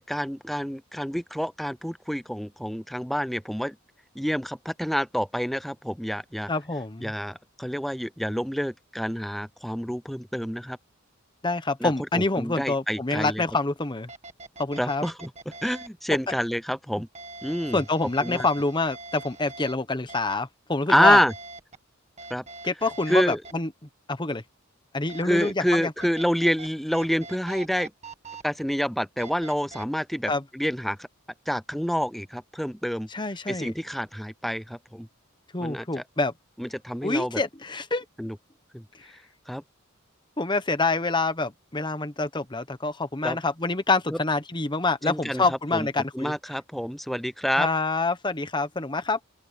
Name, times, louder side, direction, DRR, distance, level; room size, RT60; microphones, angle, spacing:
voice 1, 0.0-3.8 4.2-6.5 7.0-10.8 11.8-13.4 14.8-15.3 15.6-17.1 17.4-17.8 18.2-18.5 20.9-21.3 22.3-22.4 23.1-23.4 25.2-27.9 28.4-31.0 31.5-33.1 33.5-35.1 35.6-36.0 36.6-37.4 38.2-38.4 38.7-38.8 39.5-39.6 43.2-43.4 44.1-44.2 45.0-45.4 45.7-45.9 46.1-47.7, equal, ahead, 0.5 m, -27 dB
voice 2, 6.5-7.1 11.4-14.1 14.6-15.0 17.7-21.2 22.6-23.7 24.1-24.4 24.9-25.9 30.3-30.4 33.1-33.7 35.5-36.3 37.0-38.0 40.4-46.3 47.5-49.2, left 3 dB, 20° left, 1.1 m, -26 dB
sound 1, 13.5-13.6 14.1-15.9 17.1-19.7 20.1-20.3 21.3-21.8 22.2-23.5 25.1-26.7 26.9-28.4 29.2-29.8, right 3 dB, 35° right, 1.8 m, -43 dB
open air
head